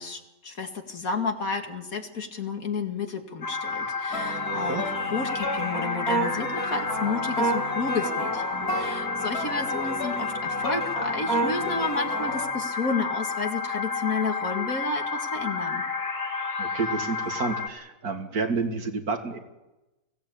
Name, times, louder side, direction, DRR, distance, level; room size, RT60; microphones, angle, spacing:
voice 1, 0.0-4.8 5.1-15.8, left 4 dB, 65° left, 5 dB, 2.6 m, -31 dB
sound 1, 3.4-17.7, left 4 dB, 40° left, 1.8 m, -31 dB
sound 2, 4.1-12.5, right 1 dB, 80° left, 5.6 m, -31 dB
voice 2, 16.6-19.4, right 4 dB, 75° right, 5 dB, 2.7 m, -29 dB
23.5 x 17.0 x 8.6 m, 1.0 s
omnidirectional pair, 1.6 m